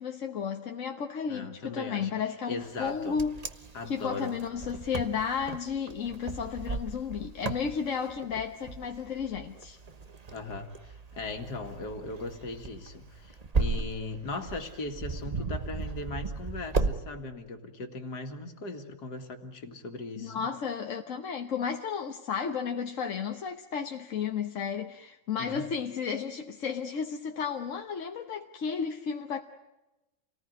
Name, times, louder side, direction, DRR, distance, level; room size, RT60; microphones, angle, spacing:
voice 1, 0.0-3.3 3.9-9.8 20.2-29.4, left 6 dB, 50° left, 1.3 m, -33 dB
voice 2, 1.3-2.1 2.5-3.2 3.7-4.4 10.3-20.5 25.4-25.7, left 3 dB, 65° left, 2.7 m, -38 dB
Wind, 2.8-17.0, right 3 dB, 25° right, 1.0 m, -35 dB
28.5 x 19.0 x 9.4 m
omnidirectional pair, 1.9 m